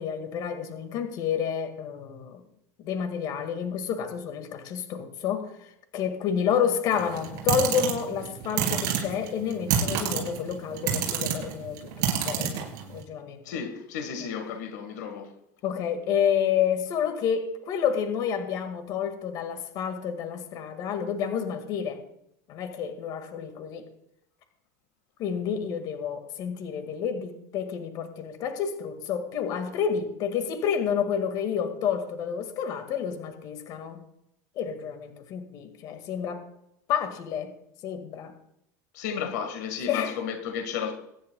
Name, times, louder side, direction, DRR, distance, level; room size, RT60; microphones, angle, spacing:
voice 1, 0.0-2.4 2.8-13.4 15.6-22.0 22.5-23.8 25.2-34.0 34.6-36.4 36.9-37.5 37.8-38.3 39.9-40.2, left 8 dB, 45° left, 2.0 m, -29 dB
sound 1, 6.9-13.0, right 8 dB, 50° right, 4.0 m, -28 dB
voice 2, 13.5-15.3 38.9-40.9, left 7 dB, 85° left, 1.7 m, -33 dB
23.0 x 10.0 x 2.3 m
supercardioid pair, 145°, 9 cm